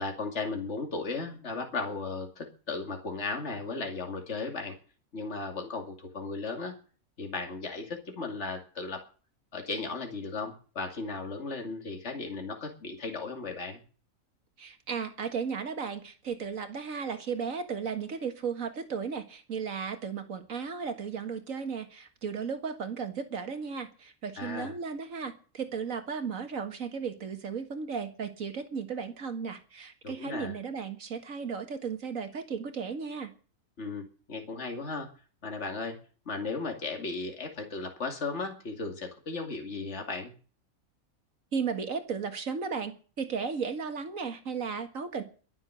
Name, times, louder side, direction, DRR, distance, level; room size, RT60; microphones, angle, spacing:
voice 1, 0.0-4.8 5.1-6.7 7.2-9.0 9.5-13.8 24.4-24.8 30.0-30.6 33.8-35.1 35.4-36.0 36.3-40.3, left 3 dB, 50° left, 3 dB, 2.8 m, -36 dB
voice 2, 14.6-33.3 41.5-45.2, right 6 dB, 65° right, 7 dB, 2.2 m, -35 dB
22.5 x 7.5 x 6.4 m, 0.39 s
omnidirectional pair, 1.5 m